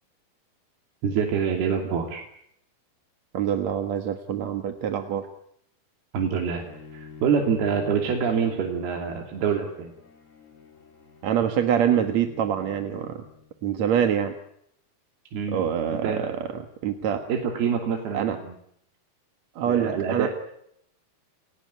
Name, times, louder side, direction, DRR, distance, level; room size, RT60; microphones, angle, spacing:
voice 1, 1.0-2.2 6.1-6.6 6.9-9.9 15.3-15.6 15.9-16.3 17.3-18.5 19.7-20.3, right 6 dB, 80° right, 2 dB, 4.8 m, -26 dB
voice 2, 3.3-5.3 11.2-13.2 13.6-14.3 15.5-16.5 16.8-17.2 18.1-18.4 19.6-20.3, right 9 dB, 55° right, 6 dB, 2.4 m, -25 dB
Bowed string instrument, 6.5-13.6, left 6 dB, 75° left, 7.0 m, -47 dB
30.0 x 20.0 x 9.6 m, 0.74 s
omnidirectional pair, 4.4 m